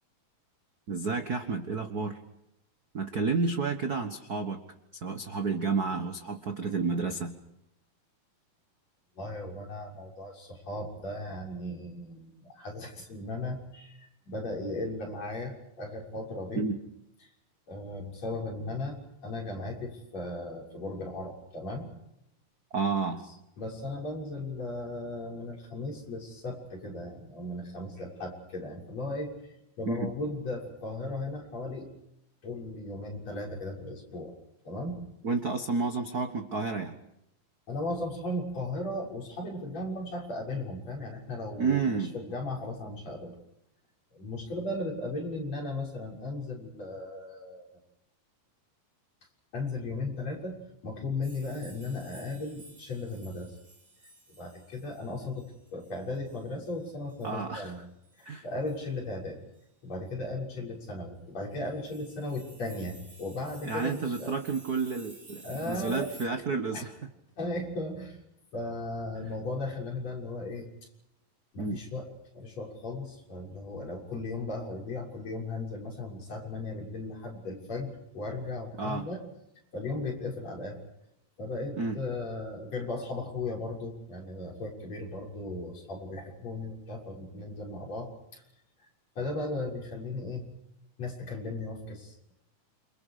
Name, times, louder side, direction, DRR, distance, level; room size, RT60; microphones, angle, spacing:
voice 1, 0.9-2.2 2.9-4.6 5.0-7.4 16.5-16.8 22.7-23.2 29.9-30.1 35.2-36.9 41.6-42.1 57.2-57.7 58.2-58.4 63.6-66.9 71.6-71.8 78.8-79.1 81.8-82.0, right 4 dB, 55° right, 7 dB, 1.0 m, -30 dB
voice 2, 9.2-16.6 17.7-19.0 19.2-21.9 23.6-29.3 29.8-31.9 32.4-34.3 34.6-35.0 37.7-43.4 44.1-47.7 49.5-50.6 50.8-53.6 54.4-55.4 55.7-57.8 58.2-59.4 59.8-64.3 65.4-66.1 66.7-66.8 67.4-68.2 68.5-70.7 71.5-79.2 79.7-80.8 81.4-88.4 88.8-88.9 89.2-90.5 91.0-92.3, left 2 dB, 45° left, -1 dB, 7.8 m, -36 dB
sound 1, 51.2-57.4 57.7-57.8 58.0-58.3 58.7-58.8 59.5-59.6 61.5-66.3, right 2 dB, 20° right, 4.2 m, -53 dB
29.0 x 27.5 x 5.1 m, 0.82 s
omnidirectional pair, 4.0 m